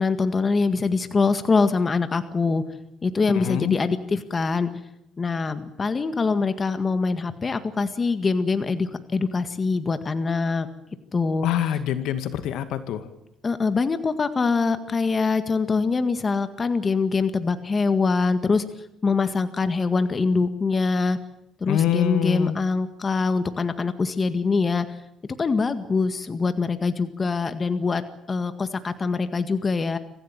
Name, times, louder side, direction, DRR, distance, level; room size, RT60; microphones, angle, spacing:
voice 1, 0.0-2.6 3.0-4.7 5.2-10.7 11.1-11.5 13.4-18.6 19.0-21.2 21.6-25.0 25.4-30.0, left 4 dB, 30° left, 10 dB, 1.9 m, -24 dB
voice 2, 3.3-3.8 11.4-13.1 21.7-22.6, left 11 dB, 80° left, 10 dB, 2.2 m, -25 dB
26.0 x 15.5 x 9.1 m, 0.81 s
cardioid pair, 110°, 0 cm